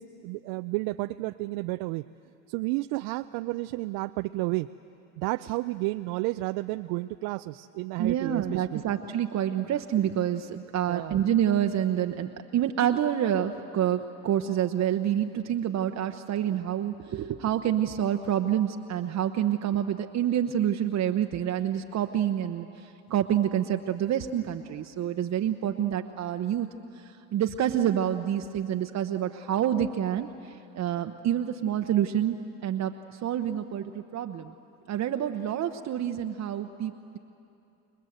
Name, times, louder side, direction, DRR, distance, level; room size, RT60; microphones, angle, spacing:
voice 1, 0.0-2.0 2.5-4.7 5.2-8.8 10.8-11.2, right 20 dB, 75° right, 10 dB, 0.5 m, -31 dB
voice 2, 8.0-26.7 26.9-32.4 32.6-34.5 34.9-37.2, right 10 dB, 45° right, 6 dB, 0.9 m, -28 dB
28.0 x 21.5 x 7.9 m, 2.8 s
supercardioid pair, 90°, 37 cm